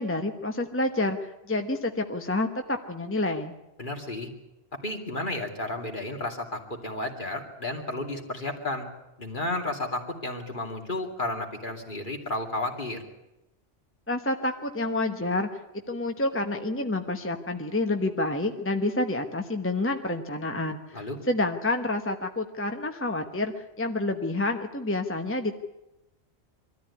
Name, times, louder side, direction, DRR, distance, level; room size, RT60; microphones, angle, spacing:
voice 1, 0.0-3.5 14.1-15.5 15.9-25.6, left 2 dB, 10° left, 5 dB, 1.0 m, -28 dB
voice 2, 3.8-4.3 4.8-8.9 9.2-13.0 20.9-21.2, left 2 dB, 50° left, 2 dB, 2.8 m, -32 dB
23.5 x 13.5 x 9.7 m, 0.96 s
omnidirectional pair, 1.1 m